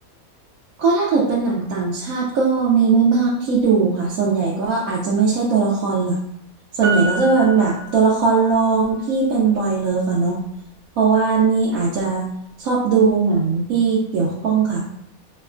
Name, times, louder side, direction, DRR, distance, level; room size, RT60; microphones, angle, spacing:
voice 1, 0.8-6.2 6.7-10.4 11.0-12.3 12.6-14.8, right 4 dB, 85° right, -5 dB, 1.0 m, -19 dB
Piano, 6.8-8.6 8.9-9.0, right 3 dB, 45° right, 1.1 m, -28 dB
4.4 x 2.1 x 2.4 m, 0.73 s
omnidirectional pair, 1.4 m